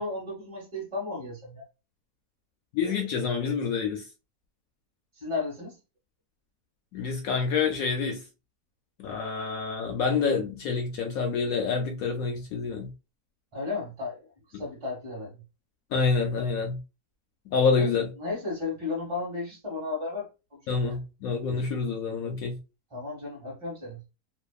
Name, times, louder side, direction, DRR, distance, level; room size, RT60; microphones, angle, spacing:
voice 1, 0.0-1.6 5.1-5.8 13.5-15.4 17.8-17.9 18.2-21.0 22.9-24.0, left 3 dB, 20° right, 1.0 m, -34 dB
voice 2, 2.7-4.0 6.9-8.2 9.0-12.9 14.5-14.6 15.9-16.8 17.5-18.1 20.7-22.6, left 5 dB, 70° left, 0.8 m, -27 dB
2.7 x 2.3 x 2.3 m
omnidirectional pair, 1.8 m